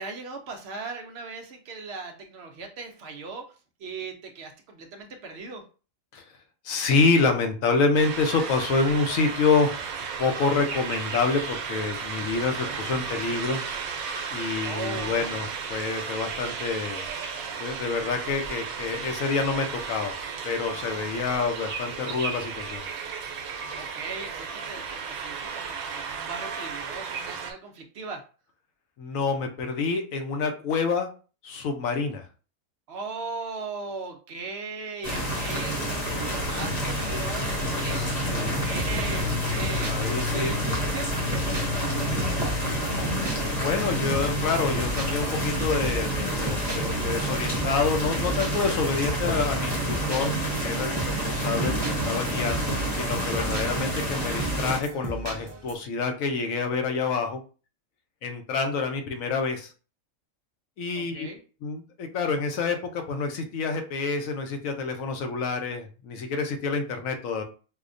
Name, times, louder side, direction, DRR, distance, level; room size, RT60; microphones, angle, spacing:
voice 1, 0.0-5.6 12.5-12.9 14.6-15.5 23.7-28.2 32.9-42.5 60.9-61.4, right 4 dB, 60° right, 4 dB, 0.7 m, -38 dB
voice 2, 6.6-9.7 10.2-13.6 14.3-17.1 17.6-20.2 20.4-22.9 29.0-31.1 31.4-32.3 38.3-38.6 39.9-40.5 43.5-50.3 50.6-57.4 58.2-59.7 60.8-61.3 61.6-67.4, left 4 dB, 75° left, 5 dB, 1.0 m, -27 dB
sound 1, 7.9-27.5, right 6 dB, 90° right, 1.1 m, -34 dB
sound 2, 35.0-54.8, equal, 35° left, 0.9 m, -28 dB
sound 3, 38.2-55.7, right 2 dB, 40° right, 0.3 m, -36 dB
4.8 x 2.1 x 2.5 m, 0.36 s
omnidirectional pair, 1.4 m